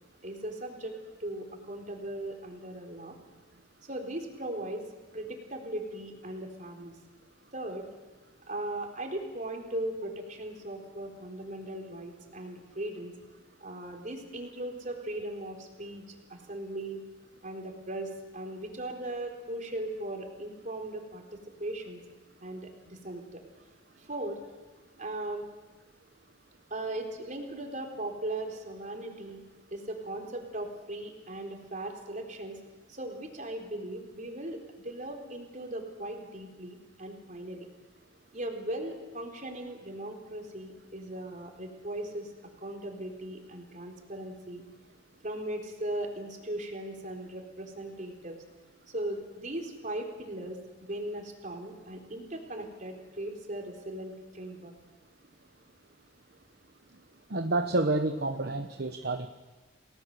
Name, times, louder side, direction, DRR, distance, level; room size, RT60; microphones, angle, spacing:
voice 1, 0.2-3.2 3.8-4.8 5.1-6.9 7.5-7.9 8.5-13.1 13.6-17.0 17.4-22.0 22.4-23.4 24.0-24.4 25.0-25.5 26.7-29.4 29.7-32.6 32.9-34.6 34.8-37.7 38.3-42.3 42.6-44.6 45.2-48.4 48.9-54.7, right 1 dB, 40° right, 2 dB, 4.0 m, -38 dB
voice 2, 57.3-59.3, right 2 dB, 60° right, 6 dB, 1.2 m, -29 dB
29.5 x 18.5 x 6.8 m, 1.2 s
head